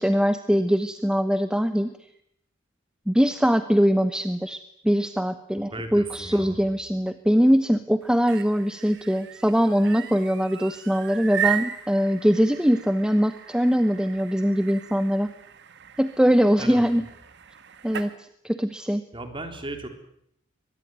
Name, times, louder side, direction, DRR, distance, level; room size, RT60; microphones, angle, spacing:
voice 1, 0.0-1.9 3.1-15.3 16.0-17.0 17.8-19.0, equal, 5° right, 10 dB, 1.0 m, -22 dB
voice 2, 5.7-6.6 16.6-17.0 19.1-19.9, right 2 dB, 25° right, 6 dB, 3.8 m, -36 dB
sound 1, 8.0-18.2, right 10 dB, 60° right, 1.9 m, -36 dB
24.0 x 20.0 x 9.5 m, 0.74 s
head